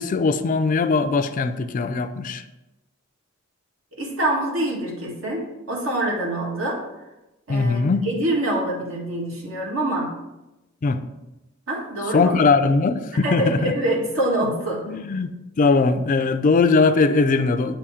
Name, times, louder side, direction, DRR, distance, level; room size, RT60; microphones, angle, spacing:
voice 1, 0.0-2.4 7.5-8.1 10.8-11.0 12.1-13.7 14.9-17.8, left 4 dB, 40° left, 11 dB, 0.4 m, -20 dB
voice 2, 4.0-6.8 7.5-10.1 11.7-12.3 13.2-14.8, right 1 dB, 75° right, -2 dB, 1.8 m, -25 dB
8.3 x 3.0 x 4.9 m, 0.99 s
head